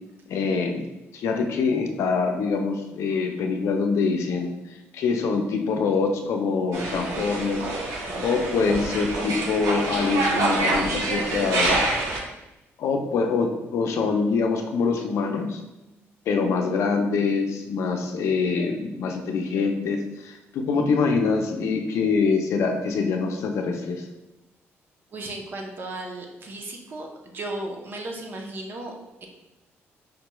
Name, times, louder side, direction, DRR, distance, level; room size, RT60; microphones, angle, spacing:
voice 1, 0.3-4.5 4.9-11.9 12.8-15.6 16.3-24.1, left 4 dB, 70° left, 4 dB, 0.5 m, -25 dB
sound 1, 6.7-12.2, right 2 dB, 80° right, 0.7 m, -26 dB
voice 2, 25.1-28.9 29.2-29.3, right 2 dB, 45° right, 1 dB, 0.7 m, -35 dB
5.0 x 3.0 x 2.2 m, 0.98 s
cardioid pair, 115°, 5 cm